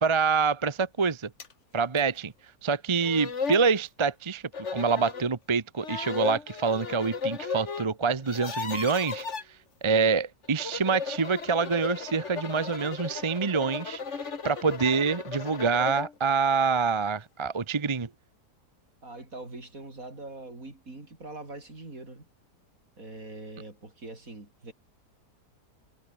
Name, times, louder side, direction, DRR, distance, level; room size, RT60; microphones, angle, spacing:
voice 1, 0.0-1.3 1.7-2.3 2.6-4.4 4.7-18.1, right 5 dB, 25° right, 0.6 m, -26 dB
sound 1, 1.4-1.5 2.0-2.1 2.7-2.8 3.0-3.7 4.5-5.3 5.8-7.9 8.1-9.4 10.4-16.1, left 5 dB, 45° left, 2.0 m, -35 dB
voice 2, 19.0-22.3 23.0-24.7, right 2 dB, 55° right, 6.0 m, -43 dB
omnidirectional pair, 1.8 m